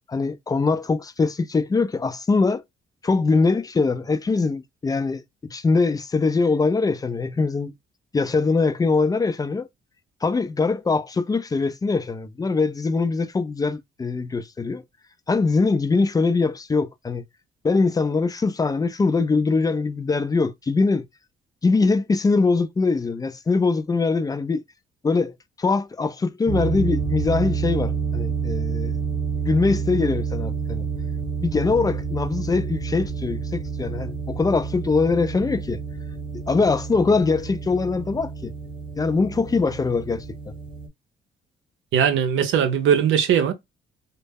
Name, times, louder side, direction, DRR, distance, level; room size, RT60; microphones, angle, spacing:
voice 1, 0.1-2.6 3.0-5.2 5.5-7.7 8.1-9.7 10.2-14.8 15.3-17.2 17.6-21.1 21.6-24.6 25.0-25.3 25.6-28.9 29.5-30.8 31.4-35.8 36.5-38.5 39.0-40.5, left 4 dB, 20° left, 0.3 m, -22 dB
sound 1, 26.5-40.9, right 5 dB, 25° right, 0.7 m, -29 dB
voice 2, 41.9-43.5, right 8 dB, 75° right, 0.6 m, -19 dB
2.1 x 2.0 x 3.4 m
cardioid pair, 90°, 20 cm